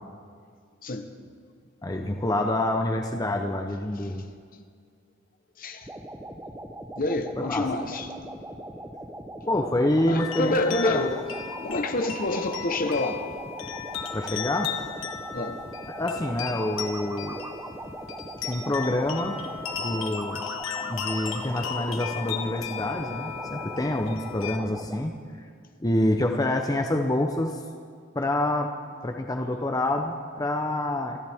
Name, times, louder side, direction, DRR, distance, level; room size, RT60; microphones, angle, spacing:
voice 1, 1.8-4.2 7.4-7.7 9.5-11.0 14.1-14.7 15.9-17.4 18.4-19.4 19.8-20.4 20.8-25.1 25.4-25.5 25.8-27.6 28.1-28.7 29.0-31.2, left 1 dB, 20° left, 0.7 m, -27 dB
voice 2, 5.6-5.9 7.0-8.1 10.1-11.3 11.6-13.2 15.3-15.6, left 2 dB, 45° left, 1.0 m, -27 dB
sound 1, 5.8-25.0, right 1 dB, 15° right, 0.8 m, -40 dB
sound 2, 10.2-24.6, left 7 dB, 90° left, 1.3 m, -36 dB
27.5 x 13.5 x 3.5 m
head